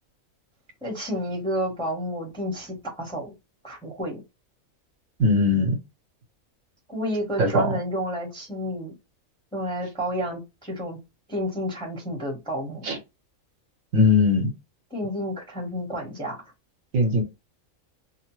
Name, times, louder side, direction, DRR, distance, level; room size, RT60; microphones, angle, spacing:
voice 1, 0.8-3.3 3.6-4.2 6.9-9.0 9.5-11.0 11.3-12.9 14.9-16.4, equal, 5° left, 0.9 m, -30 dB
voice 2, 5.2-5.8 7.4-7.7 12.8-13.0 13.9-14.5 16.9-17.2, left 2 dB, 70° right, 1.1 m, -20 dB
2.8 x 2.0 x 3.0 m
omnidirectional pair, 1.5 m